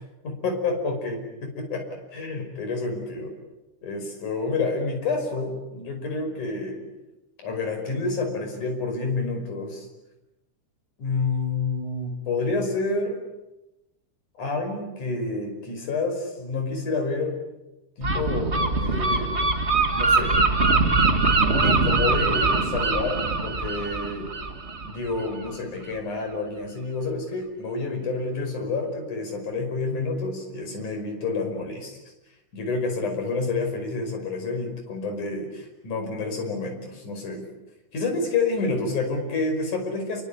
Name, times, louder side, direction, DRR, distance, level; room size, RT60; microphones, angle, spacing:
voice 1, 0.2-3.3 3.8-6.9 7.4-9.9 11.0-13.2 14.4-17.3 18.0-19.4 19.9-20.4 21.6-24.3 24.8-32.0 32.5-37.5 37.9-40.2, left 3 dB, 70° left, 4 dB, 6.8 m, -29 dB
Gull seagull, 18.0-25.5, right 3 dB, 25° right, 1.6 m, -23 dB
28.5 x 24.0 x 8.8 m, 0.98 s
omnidirectional pair, 3.6 m